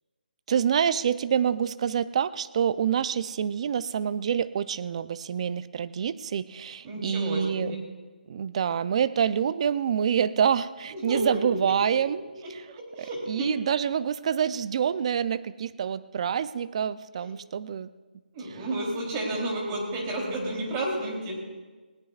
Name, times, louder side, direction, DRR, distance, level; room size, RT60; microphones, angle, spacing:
voice 1, 0.5-7.7 8.3-12.2 12.5-12.6 13.0-17.9, right 8 dB, 40° right, 15 dB, 0.5 m, -27 dB
voice 2, 6.8-7.8 10.9-11.4 11.7-11.8 12.4-13.5 18.3-21.3, right 1 dB, 25° right, -1 dB, 3.3 m, -31 dB
20.0 x 18.0 x 2.4 m, 1.3 s
hypercardioid pair, 160°, 5 cm